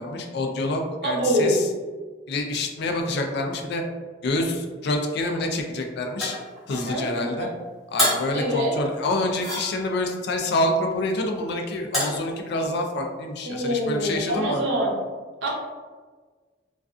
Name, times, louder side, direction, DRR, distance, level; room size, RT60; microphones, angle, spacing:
voice 1, 0.0-1.7 2.3-3.8 4.2-6.4 6.7-7.5 7.9-14.6, left 2 dB, 65° left, 3 dB, 0.4 m, -27 dB
voice 2, 1.0-1.6 6.7-7.5 8.3-8.7 13.4-14.9 15.4-15.5, equal, 85° right, -1 dB, 0.6 m, -25 dB
sound 1, 6.2-7.0 8.0-8.4 9.4-10.1 11.9-12.3, left 1 dB, ahead, 0.9 m, -27 dB
2.4 x 2.3 x 2.4 m, 1.4 s
head